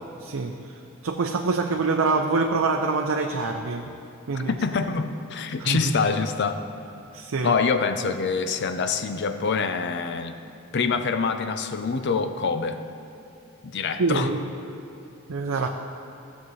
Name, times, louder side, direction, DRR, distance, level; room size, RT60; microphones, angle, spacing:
voice 1, 0.2-0.5 1.0-3.9 4.3-4.5 5.6-5.8 7.1-7.5 14.0-14.4 15.3-15.7, right 3 dB, 70° right, 2 dB, 0.5 m, -25 dB
voice 2, 4.5-6.6 7.4-10.4 10.7-12.8 13.6-14.3, left 5 dB, 55° left, 8 dB, 0.5 m, -25 dB
14.5 x 7.2 x 3.2 m, 2.8 s
head